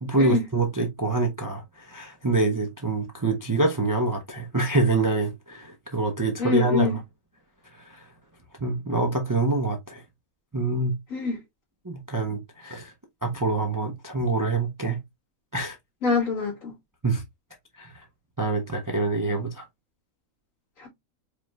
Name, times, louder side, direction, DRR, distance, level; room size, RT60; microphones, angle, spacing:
voice 1, 0.0-7.0 7.9-8.0 8.6-10.0 10.5-11.0 11.8-12.9 13.2-15.0 15.5-15.8 17.0-17.2 17.8-18.0 18.4-19.6, right 2 dB, 25° right, 0.4 m, -25 dB
voice 2, 6.4-7.0 11.1-11.4 16.0-16.7 20.8-20.9, left 4 dB, 65° left, 2.3 m, -25 dB
4.8 x 3.1 x 2.3 m
omnidirectional pair, 1.5 m